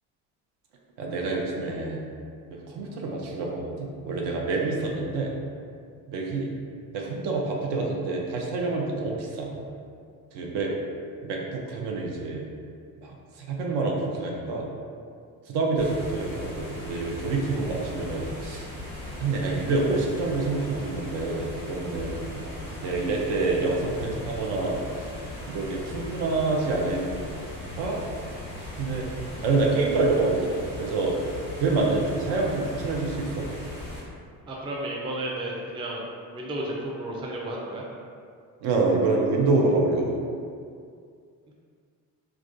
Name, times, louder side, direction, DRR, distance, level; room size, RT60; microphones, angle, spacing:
voice 1, 1.0-2.0 2.5-5.3 6.1-6.5 6.9-9.6 10.3-10.7 11.2-12.4 13.0-14.7 15.5-18.7 19.2-24.8 25.5-27.1 27.8-28.0 28.8-29.1 29.4-30.5 30.8-31.1 31.6-33.5 38.6-40.2, right 3 dB, 65° right, -1 dB, 0.6 m, -27 dB
sound 1, 15.8-34.0, left 1 dB, 85° right, 1.5 m, -38 dB
voice 2, 34.5-36.1 36.3-37.8 41.5-41.6, right 1 dB, 10° right, -3 dB, 0.4 m, -32 dB
2.3 x 2.2 x 2.5 m, 2.3 s
hypercardioid pair, 50°, 45 cm